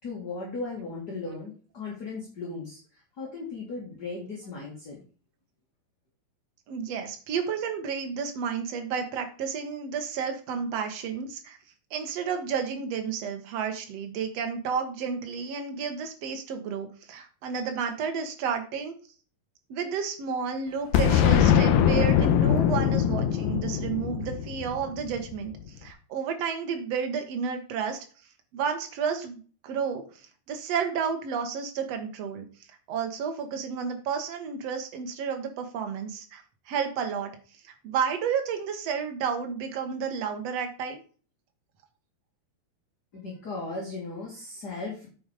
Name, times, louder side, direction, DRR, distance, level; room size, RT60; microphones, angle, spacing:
voice 1, 0.0-5.0 43.1-45.1, left 3 dB, 30° left, -4 dB, 2.3 m, -37 dB
voice 2, 6.7-11.6 11.9-18.9 19.7-28.0 28.5-32.5 32.9-37.3 37.6-41.0, right 6 dB, 55° right, 6 dB, 1.9 m, -31 dB
Boom, 20.9-25.6, left 9 dB, 75° left, 2.6 m, -22 dB
8.9 x 6.1 x 5.0 m, 0.39 s
omnidirectional pair, 4.8 m